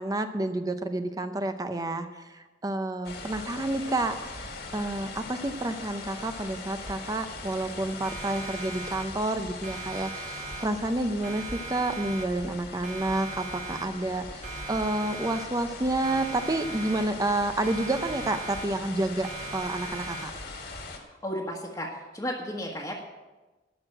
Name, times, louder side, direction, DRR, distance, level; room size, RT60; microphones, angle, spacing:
voice 1, 0.0-20.3, right 2 dB, 20° right, 8 dB, 0.6 m, -30 dB
sound 1, 3.0-21.0, left 3 dB, 60° left, 2.0 m, -41 dB
Siren, 8.0-9.4 9.6-11.0 11.2-12.6 12.8-14.2 14.4-15.8 16.0-17.4 17.6-19.0 19.2-20.6, right 4 dB, 45° right, 1.3 m, -40 dB
voice 2, 21.2-23.0, equal, 20° left, -4 dB, 1.4 m, -33 dB
12.0 x 6.4 x 8.8 m, 1.2 s
head